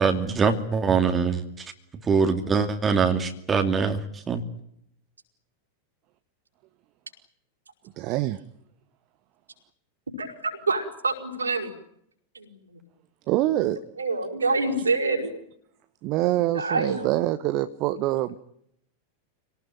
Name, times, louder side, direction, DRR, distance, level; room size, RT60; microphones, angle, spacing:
voice 1, 0.0-1.4 2.1-4.0 4.3-4.4, right 5 dB, 20° right, 2.6 m, -23 dB
voice 2, 8.0-8.4 13.3-13.8 16.0-18.4, right 15 dB, 40° right, 1.1 m, -25 dB
voice 3, 10.2-11.7 12.3-12.5 14.0-15.3 16.5-17.1, right 3 dB, 75° right, 5.3 m, -26 dB
27.0 x 19.0 x 9.2 m
figure-of-eight pair, 90°, 0 cm